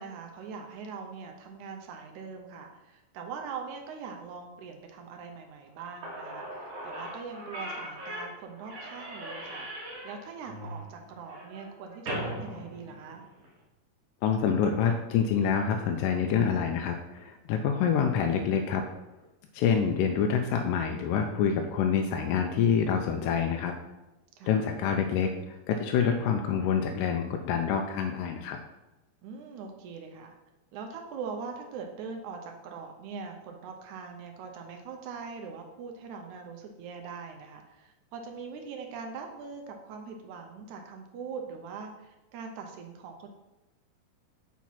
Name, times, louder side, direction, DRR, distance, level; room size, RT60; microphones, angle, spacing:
voice 1, 0.0-13.2 24.4-24.6 29.2-30.3 30.7-43.3, right 5 dB, 75° right, 3 dB, 1.9 m, -42 dB
Slam / Squeak, 5.7-5.8 6.0-13.5, right 1 dB, 55° right, 2.4 m, -39 dB
voice 2, 14.2-18.8 19.5-23.7 24.4-28.6, left 7 dB, 80° left, 4 dB, 2.0 m, -27 dB
6.0 x 4.4 x 5.7 m, 1.0 s
omnidirectional pair, 4.0 m